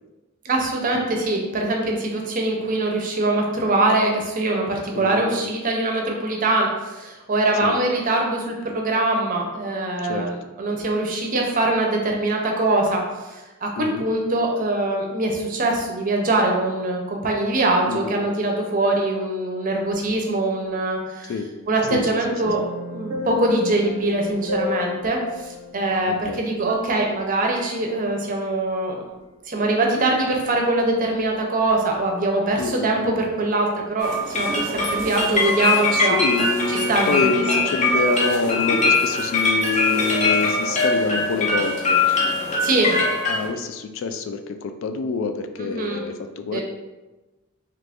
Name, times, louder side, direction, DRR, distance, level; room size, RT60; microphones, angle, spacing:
voice 1, 0.4-21.3 21.7-22.6 22.9-29.0 29.5-36.2 36.7-37.4 42.6-43.0 45.6-46.0 46.5-46.6, right 2 dB, 40° right, 1 dB, 0.6 m, -23 dB
voice 2, 4.9-5.5 7.6-7.8 10.0-10.3 13.8-14.1 17.9-18.3 21.3-21.5 21.9-22.5 26.1-26.4 32.6-33.0 36.0-42.0 42.4-46.6, left 4 dB, 60° left, 8 dB, 0.3 m, -27 dB
sound 1, 21.8-27.3 27.6-27.8, left 4 dB, 85° right, 0.5 m, -33 dB
sound 2, 34.0-43.5, left 3 dB, 35° left, 0.7 m, -22 dB
3.0 x 2.5 x 3.4 m, 1.1 s
head